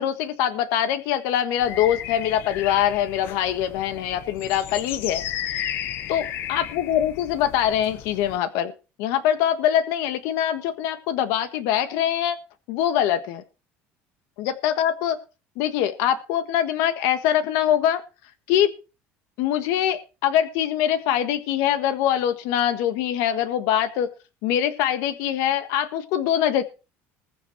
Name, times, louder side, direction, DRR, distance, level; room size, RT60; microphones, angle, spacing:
voice 1, 0.0-5.2 6.1-8.7 9.0-12.4 12.7-13.4 14.4-15.2 15.6-18.0 18.5-18.7 19.4-24.1 24.4-26.6, left 10 dB, 65° left, 11 dB, 1.5 m, -23 dB
sound 1, 1.6-8.4, left 11 dB, 45° left, 0.9 m, -34 dB
21.0 x 7.0 x 4.7 m, 0.32 s
cardioid pair, 175°, 5 cm